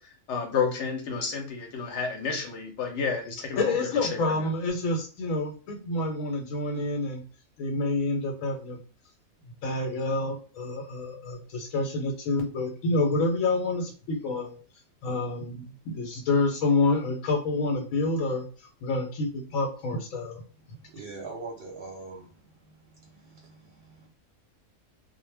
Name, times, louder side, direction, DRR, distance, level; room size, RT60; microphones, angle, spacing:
voice 1, 0.3-3.7 4.1-4.2, left 5 dB, 70° left, 4 dB, 0.8 m, -30 dB
voice 2, 3.6-7.2 7.6-8.8 9.6-14.5 15.0-18.4 18.8-20.4, left 2 dB, 85° left, 0 dB, 1.0 m, -28 dB
voice 3, 20.9-22.3 23.0-24.1, right 3 dB, 60° right, -1 dB, 0.7 m, -42 dB
2.1 x 2.1 x 3.2 m, 0.38 s
omnidirectional pair, 1.4 m